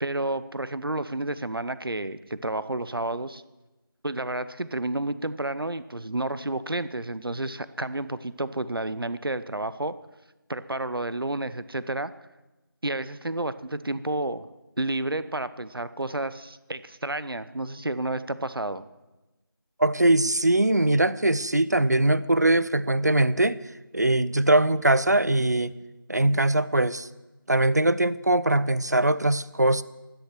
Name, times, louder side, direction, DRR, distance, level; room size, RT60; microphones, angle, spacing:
voice 1, 0.0-3.4 4.0-10.0 10.5-12.1 12.8-14.5 14.8-18.8, right 2 dB, 85° right, 14 dB, 0.9 m, -30 dB
voice 2, 19.8-23.6 23.9-25.7 26.1-27.1 27.5-29.8, right 1 dB, 50° right, 17 dB, 0.6 m, -21 dB
13.5 x 11.5 x 6.2 m, 1.1 s
figure-of-eight pair, 175°, 12 cm